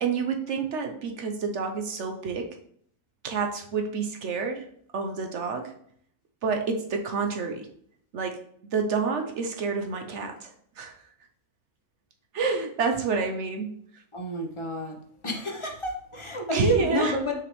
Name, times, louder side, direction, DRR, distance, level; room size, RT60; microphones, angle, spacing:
voice 1, 0.0-2.5 3.2-4.6 4.9-5.7 6.4-7.7 8.1-8.4 8.7-10.5 10.8-10.9 12.3-13.7 16.5-17.1, right 5 dB, 60° right, 4 dB, 0.8 m, -28 dB
voice 2, 14.1-15.0 15.2-17.4, equal, 25° left, 2 dB, 0.7 m, -29 dB
6.4 x 4.9 x 3.1 m, 0.64 s
omnidirectional pair, 1.7 m